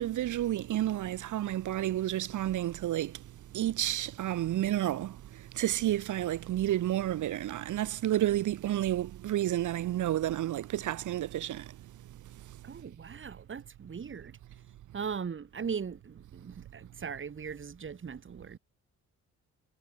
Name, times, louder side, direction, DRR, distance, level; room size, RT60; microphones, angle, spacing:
voice 1, 0.0-3.2 3.5-5.2 5.5-11.7, right 13 dB, 80° right, 4.3 m, -30 dB
voice 2, 12.6-14.4 14.9-18.6, right 6 dB, 40° right, 4.2 m, -39 dB
cardioid pair, 90°, 30 cm